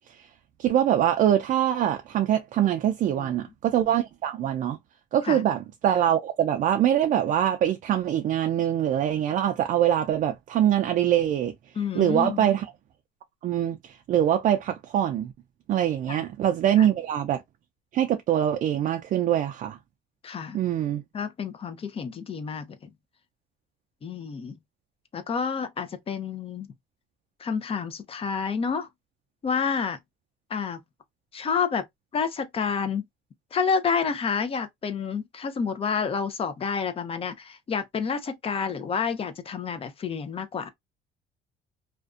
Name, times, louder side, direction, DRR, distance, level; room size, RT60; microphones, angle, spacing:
voice 1, 0.6-4.8 5.1-11.5 11.9-12.7 13.4-15.3 15.7-17.4 17.9-19.8 20.5-21.0, right 10 dB, 50° right, 0.4 m, -24 dB
voice 2, 11.8-12.5 16.1-16.2 16.8-16.9 20.2-20.6 21.1-22.8 24.0-24.5 25.1-26.7 27.4-28.9 29.4-30.0 30.5-30.8 31.3-31.8 32.1-33.0 33.5-40.7, left 6 dB, 35° left, 0.5 m, -29 dB
2.5 x 2.1 x 2.4 m
cardioid pair, 110°, 17 cm